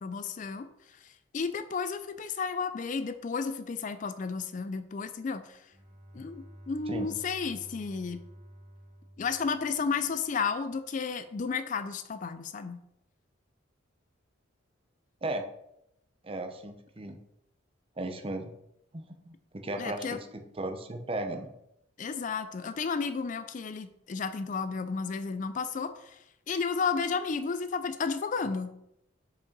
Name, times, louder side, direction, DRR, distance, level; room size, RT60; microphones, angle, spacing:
voice 1, 0.0-5.7 6.1-8.2 9.2-12.8 19.8-20.2 22.0-28.7, left 5 dB, 40° left, 11 dB, 0.4 m, -33 dB
Bowed string instrument, 5.7-10.3, equal, 55° right, 2.7 m, -51 dB
voice 2, 16.2-17.2 18.0-18.5 18.9-21.5, right 2 dB, 30° right, 6 dB, 0.7 m, -36 dB
5.3 x 5.0 x 5.3 m, 0.81 s
head